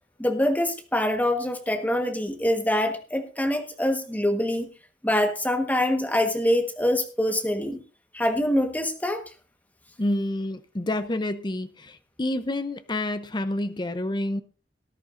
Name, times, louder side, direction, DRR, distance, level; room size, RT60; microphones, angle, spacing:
voice 1, 0.2-4.7 5.0-7.8 8.1-9.2, left 1 dB, 10° left, 5 dB, 1.4 m, -24 dB
voice 2, 10.0-14.4, left 1 dB, 25° left, 11 dB, 0.7 m, -28 dB
18.5 x 10.5 x 2.6 m, 0.34 s
head